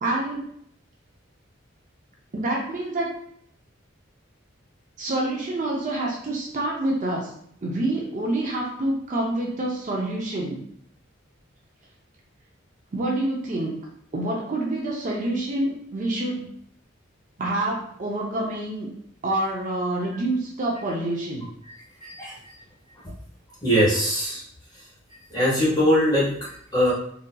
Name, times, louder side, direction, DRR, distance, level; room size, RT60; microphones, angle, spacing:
voice 1, 0.0-0.5 2.3-3.1 5.0-7.3 7.6-10.6 12.9-13.7 14.1-16.5 17.4-18.9 19.2-21.5, right 1 dB, 40° right, -2 dB, 0.6 m, -27 dB
voice 2, 22.0-22.3 23.6-24.4 25.3-26.9, equal, 20° left, -7 dB, 1.4 m, -21 dB
3.9 x 2.7 x 2.2 m, 0.66 s
head